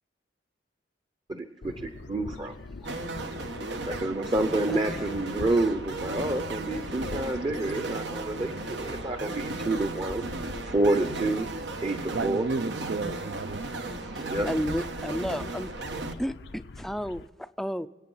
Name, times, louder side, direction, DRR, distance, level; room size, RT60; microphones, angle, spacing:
voice 1, 1.3-2.6 3.9-10.2 10.6-11.5 11.8-12.5 14.2-14.5, right 2 dB, 30° right, 8 dB, 0.7 m, -28 dB
sound 1, 1.6-17.3, left 3 dB, 75° left, 0.6 m, -43 dB
sound 2, 2.8-16.1, right 3 dB, 85° right, 1.1 m, -36 dB
voice 2, 4.7-5.1 14.1-15.7 16.2-17.9, equal, ahead, 13 dB, 0.4 m, -32 dB
voice 3, 12.1-14.4, right 3 dB, 65° right, 10 dB, 0.5 m, -33 dB
25.5 x 8.5 x 5.5 m, 1.1 s
head